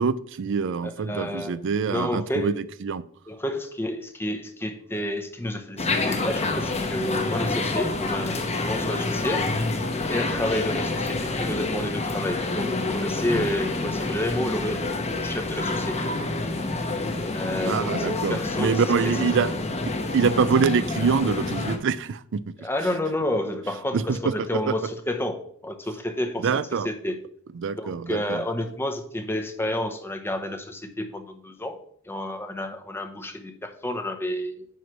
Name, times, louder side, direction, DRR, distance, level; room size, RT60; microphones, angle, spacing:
voice 1, 0.0-2.5 2.8-3.0 17.7-19.5 20.1-22.7 23.9-24.3 24.7-24.8 26.4-26.9 27.5-28.4, right 5 dB, 60° right, 16 dB, 0.4 m, -25 dB
voice 2, 0.8-1.6 1.8-2.5 3.3-9.7 10.1-16.0 17.3-19.1 22.6-26.5 26.8-27.2 27.8-31.8 32.0-34.7, left 1 dB, 10° left, 6 dB, 0.8 m, -30 dB
sound 1, 5.8-21.8, left 2 dB, 30° left, 1.0 m, -28 dB
9.2 x 3.2 x 6.0 m, 0.63 s
head